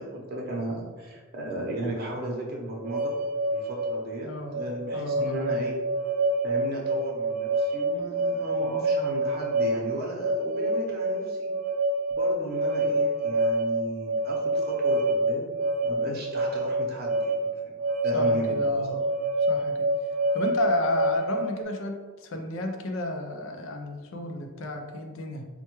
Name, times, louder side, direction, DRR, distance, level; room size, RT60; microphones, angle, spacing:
voice 1, 0.0-3.1 3.5-5.8 6.4-11.5 12.1-15.5 15.8-17.5 18.0-18.6 18.9-19.0, right 1 dB, 50° right, -2 dB, 0.7 m, -35 dB
sound 1, 2.9-21.6, right 1 dB, 80° right, 0.3 m, -27 dB
voice 2, 4.3-4.6 4.9-5.6 18.1-19.0 19.5-19.9 20.3-25.5, left 1 dB, 65° left, 4 dB, 0.5 m, -32 dB
4.5 x 2.2 x 2.9 m, 1.4 s
head